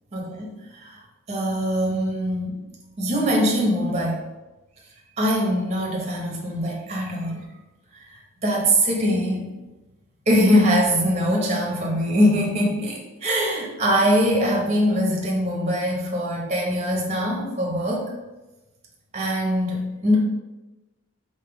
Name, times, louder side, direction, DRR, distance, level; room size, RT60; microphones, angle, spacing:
voice 1, 0.1-1.0 1.3-2.6 3.0-4.2 5.2-7.4 7.9-9.5 10.3-18.0 19.1-20.2, equal, 30° right, -2 dB, 0.8 m, -22 dB
3.6 x 2.8 x 4.6 m, 1.1 s
head